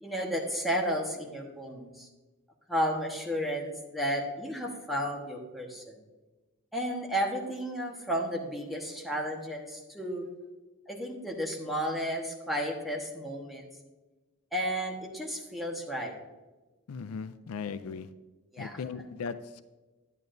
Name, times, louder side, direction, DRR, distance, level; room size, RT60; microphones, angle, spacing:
voice 1, 0.0-2.1 2.7-6.0 6.7-10.3 10.9-13.7 14.5-16.1 18.5-18.7, equal, ahead, -1 dB, 1.2 m, -33 dB
voice 2, 16.9-18.1 18.6-19.6, left 5 dB, 80° left, 13 dB, 0.4 m, -38 dB
10.5 x 9.4 x 2.6 m, 1.2 s
head